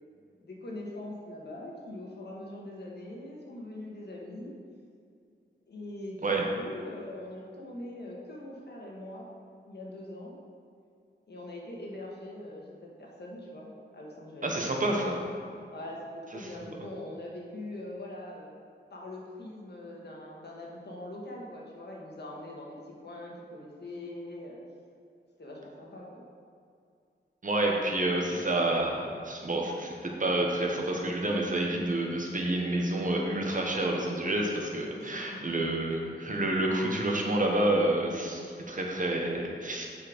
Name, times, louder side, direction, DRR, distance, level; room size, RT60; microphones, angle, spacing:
voice 1, 0.4-4.5 5.7-9.3 9.6-10.3 11.3-14.5 15.7-18.5 18.9-24.6 25.4-26.2 34.9-35.5, left 1 dB, 60° left, -3 dB, 1.5 m, -42 dB
voice 2, 14.4-15.2 16.4-16.5 27.4-39.9, right 1 dB, 45° right, 0 dB, 1.1 m, -29 dB
7.3 x 4.4 x 5.1 m, 2.4 s
wide cardioid pair, 85°, 19 cm